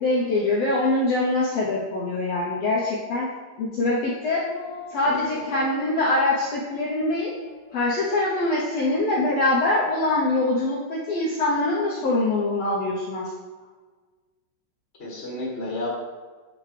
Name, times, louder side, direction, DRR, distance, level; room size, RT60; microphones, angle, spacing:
voice 1, 0.0-3.3 3.6-4.5 4.9-7.3 7.7-13.3, left 2 dB, 70° left, -5 dB, 1.6 m, -23 dB
sound 1, 4.4-5.0 5.4-6.6 6.9-7.0 7.4-7.8 8.0-8.9, left 3 dB, 85° left, 1.2 m, -40 dB
voice 2, 5.0-5.6 15.0-15.9, left 2 dB, 30° left, -5 dB, 1.2 m, -33 dB
9.4 x 4.9 x 3.2 m, 1.4 s
omnidirectional pair, 3.8 m